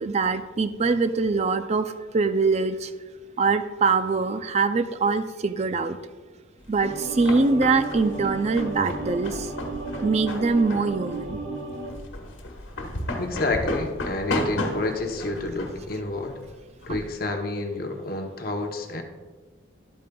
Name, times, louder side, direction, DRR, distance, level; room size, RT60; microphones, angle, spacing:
voice 1, 0.0-2.9 3.4-6.0 6.7-9.5 10.0-11.4 16.9-17.0, right 4 dB, 35° right, 10 dB, 0.4 m, -23 dB
sound 1, 6.7-17.1, left 1 dB, 85° left, 1.2 m, -34 dB
sound 2, 6.8-11.9, right 3 dB, 80° right, 1.2 m, -34 dB
voice 2, 13.2-16.3 16.9-19.0, left 2 dB, 50° left, 4 dB, 0.8 m, -29 dB
11.5 x 8.6 x 2.3 m, 1.3 s
head